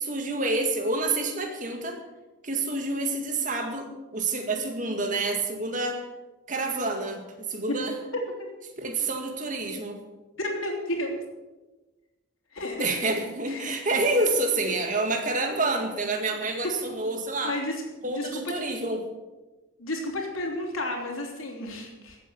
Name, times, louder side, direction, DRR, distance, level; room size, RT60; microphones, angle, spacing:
voice 1, 0.0-2.0 2.4-3.9 4.1-6.0 6.5-8.0 8.8-10.0 12.8-17.6 18.0-19.1, right 2 dB, 40° right, 4 dB, 2.0 m, -28 dB
voice 2, 10.4-11.2 12.5-12.8 13.5-13.7 17.4-18.5 19.8-22.2, left 1 dB, 90° left, 0 dB, 3.4 m, -32 dB
15.5 x 8.3 x 7.0 m, 1.1 s
head